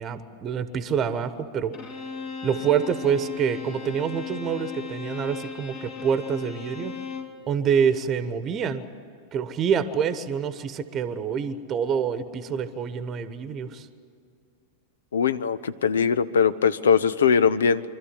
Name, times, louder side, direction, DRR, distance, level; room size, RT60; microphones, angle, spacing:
voice 1, 0.0-1.7 2.4-6.9 7.5-8.8 9.3-13.9, right 7 dB, 30° right, 12 dB, 1.2 m, -26 dB
Bowed string instrument, 1.7-7.4, left 5 dB, 45° left, 2.4 m, -36 dB
voice 2, 15.1-17.8, left 6 dB, 65° left, 16 dB, 0.7 m, -21 dB
25.5 x 13.5 x 10.0 m, 2.5 s
figure-of-eight pair, 90°, 0 cm